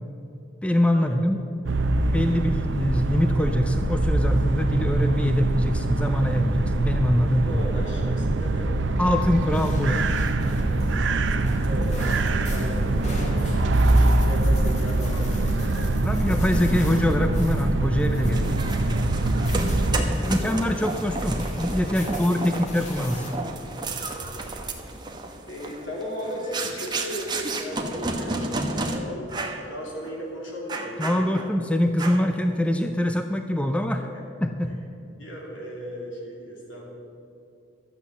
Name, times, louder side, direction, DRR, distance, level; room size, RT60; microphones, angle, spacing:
voice 1, 0.6-1.4 2.1-7.5 9.0-10.1 16.0-18.9 20.3-23.3 31.0-34.0 34.4-34.7, left 1 dB, 5° left, 6 dB, 0.5 m, -24 dB
sound 1, 1.6-20.0, right 2 dB, 70° right, 0.6 m, -23 dB
voice 2, 7.4-8.7 10.6-11.0 11.6-13.4 13.8-15.9 18.2-18.5 18.9-19.2 20.1-20.6 21.9-22.1 24.0-24.5 25.5-31.5 33.9-34.2 35.2-36.9, equal, 75° left, -2 dB, 3.1 m, -37 dB
sound 2, 9.5-23.3, equal, 35° left, 2.2 m, -38 dB
sound 3, 18.3-29.0 29.3-29.7 30.0-30.2 30.7-31.6 32.0-32.4, right 2 dB, 20° right, 1.0 m, -31 dB
12.5 x 8.1 x 7.1 m, 2.7 s
head